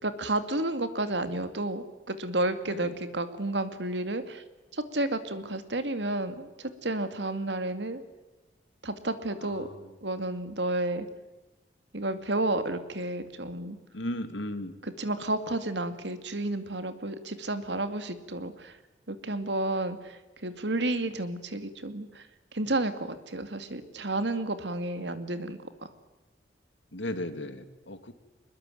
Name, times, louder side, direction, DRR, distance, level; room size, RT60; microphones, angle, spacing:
voice 1, 0.0-4.4 4.7-8.0 8.8-9.7 10.0-11.1 11.9-13.8 14.8-18.8 19.1-22.3 22.5-25.6, right 2 dB, 75° right, 10 dB, 2.4 m, -31 dB
voice 2, 9.4-9.9 13.9-14.7 26.9-28.1, left 1 dB, 90° left, 10 dB, 2.4 m, -36 dB
23.5 x 21.5 x 9.3 m, 1.1 s
head